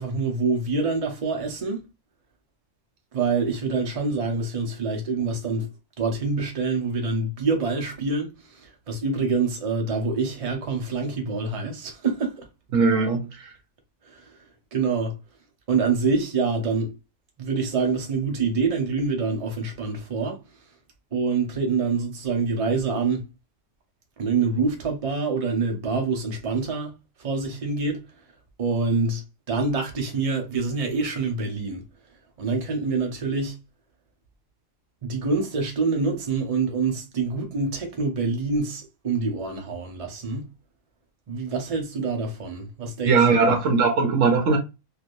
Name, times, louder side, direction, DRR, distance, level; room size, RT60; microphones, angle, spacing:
voice 1, 0.0-1.8 3.1-5.7 6.0-12.4 14.1-14.3 14.7-15.1 15.7-16.9 17.4-20.4 21.1-23.2 24.2-26.9 27.2-28.0 28.6-29.2 29.5-31.8 32.4-33.6 35.0-40.4 41.3-43.5, right 4 dB, 35° right, 0.7 m, -26 dB
voice 2, 12.7-13.3 43.1-44.6, right 4 dB, 80° right, 1.2 m, -19 dB
3.2 x 2.6 x 2.5 m
omnidirectional pair, 1.3 m